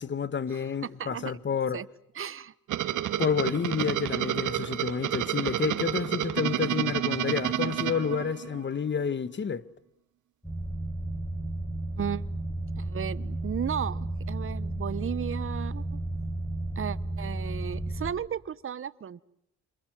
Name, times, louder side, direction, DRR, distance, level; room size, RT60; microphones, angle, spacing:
voice 1, 0.0-1.8 3.2-9.7, left 6 dB, 40° left, 1.4 m, -29 dB
voice 2, 0.5-1.3 1.7-1.9 2.1-2.5 12.0-12.3 12.8-16.0 16.7-19.2, right 8 dB, 45° right, 1.2 m, -35 dB
sound 1, 2.7-8.7, right 12 dB, 80° right, 2.2 m, -30 dB
sound 2, 10.4-18.1, right 2 dB, 5° left, 6.3 m, -33 dB
27.5 x 27.5 x 7.7 m
cardioid pair, 90°, 30 cm